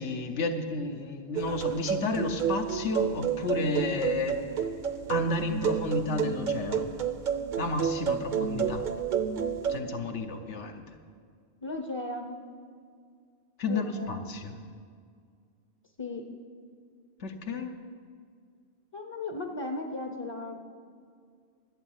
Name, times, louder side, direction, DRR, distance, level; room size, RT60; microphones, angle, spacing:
voice 1, 0.0-4.5 5.1-6.9 7.6-8.9 9.7-10.8 13.6-14.5 17.2-17.7, left 3 dB, 80° left, 6 dB, 1.2 m, -31 dB
sound 1, 1.4-9.8, right 8 dB, 50° right, 0.7 m, -30 dB
voice 2, 11.6-12.4 13.7-14.3 16.0-16.2 18.9-20.7, left 2 dB, 30° left, 4 dB, 0.6 m, -36 dB
12.0 x 8.1 x 7.2 m, 2.1 s
omnidirectional pair, 1.2 m